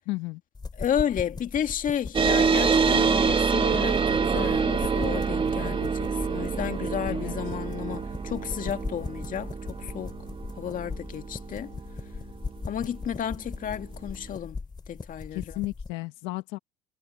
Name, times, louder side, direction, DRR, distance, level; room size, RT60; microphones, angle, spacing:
voice 1, 0.1-0.4 7.1-7.3 15.3-16.6, left 21 dB, 70° left, 1.3 m, -33 dB
sound 1, 0.5-15.9, left 4 dB, 20° left, 3.9 m, -39 dB
voice 2, 0.7-10.1 10.6-11.7 12.7-14.6 14.9-15.6, left 9 dB, 40° left, 2.1 m, -32 dB
sound 2, 2.1-13.1, right 5 dB, 25° right, 1.7 m, -26 dB
supercardioid pair, 90°, 20 cm